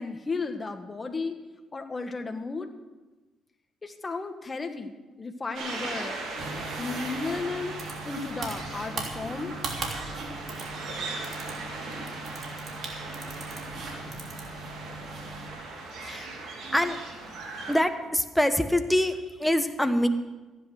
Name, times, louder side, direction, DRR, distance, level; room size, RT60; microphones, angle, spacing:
voice 1, 0.0-1.4 1.7-2.7 3.8-6.2 6.8-9.8, left 3 dB, 25° left, 6 dB, 1.6 m, -34 dB
sound 1, 5.5-17.7, right 3 dB, 75° right, 3.4 m, -38 dB
sound 2, 6.4-15.5, right 2 dB, 55° right, 3.2 m, -39 dB
voice 2, 17.7-20.1, left 1 dB, 5° left, 7 dB, 1.2 m, -25 dB
15.0 x 10.0 x 6.5 m, 1.2 s
cardioid pair, 90°, 0 cm